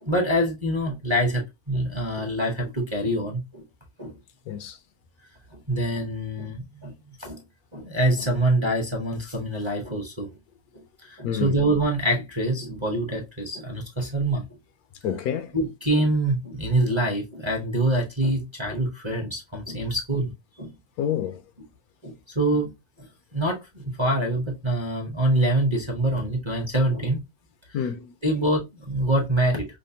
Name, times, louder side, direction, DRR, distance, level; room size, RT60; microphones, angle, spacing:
voice 1, 0.0-3.6 4.0-4.1 5.7-6.9 7.2-7.4 7.7-10.3 11.0-14.4 15.5-20.3 20.6-20.7 21.1-21.2 22.0-22.7 23.0-23.1 23.3-27.2 28.2-29.7, right 1 dB, 25° right, 0.6 m, -25 dB
voice 2, 4.5-4.8 11.2-11.5 15.0-15.5 21.0-21.4 27.7-28.4, left 9 dB, 80° left, 1.0 m, -28 dB
5.0 x 2.1 x 2.7 m
omnidirectional pair, 1.6 m